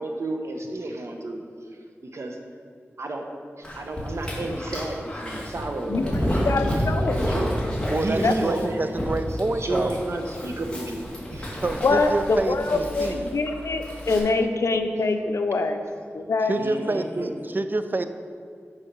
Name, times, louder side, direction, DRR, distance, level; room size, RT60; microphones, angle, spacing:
voice 1, 0.0-1.4 2.1-2.4 3.0-3.3 3.8-7.5 8.0-8.8 9.4-11.6 16.6-17.3, right 2 dB, 70° right, 3 dB, 0.9 m, -31 dB
Dog, 3.6-14.2, equal, 20° left, 1.8 m, -30 dB
voice 2, 5.9-7.3 8.2-8.6 11.8-12.1 12.5-15.8 16.1-16.6, left 3 dB, 80° left, 7 dB, 0.6 m, -24 dB
voice 3, 7.9-9.9 11.6-13.3 16.5-18.0, right 2 dB, 45° right, 9 dB, 0.4 m, -27 dB
7.2 x 5.6 x 5.4 m, 2.2 s
wide cardioid pair, 90°, 5 cm